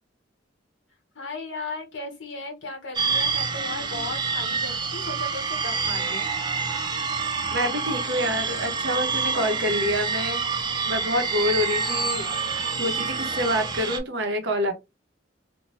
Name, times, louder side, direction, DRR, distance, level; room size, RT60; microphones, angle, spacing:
voice 1, 1.1-6.2, left 3 dB, 80° left, 1.0 m, -36 dB
sound 1, 2.9-14.0, right 5 dB, 25° right, 0.4 m, -27 dB
voice 2, 7.5-12.3 12.8-14.7, equal, 70° right, 0.9 m, -27 dB
2.7 x 2.1 x 3.0 m
head